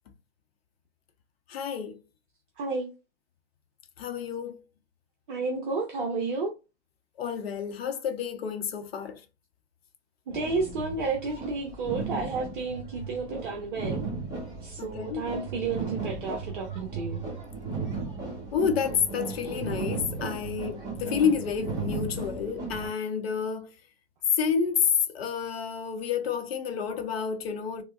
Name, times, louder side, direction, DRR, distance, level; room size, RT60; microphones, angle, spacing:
voice 1, 1.5-2.0 4.0-4.6 7.2-9.2 14.8-15.2 18.5-23.7 24.4-24.9 25.1-27.8, left 7 dB, 60° left, 0.8 m, -29 dB
voice 2, 2.6-2.9 5.3-6.5 10.3-14.0 14.6-17.2, right 4 dB, 45° right, 0.7 m, -31 dB
sound 1, 10.3-22.9, right 4 dB, 10° right, 1.1 m, -36 dB
3.5 x 2.1 x 2.3 m
hypercardioid pair, 130°, 35 cm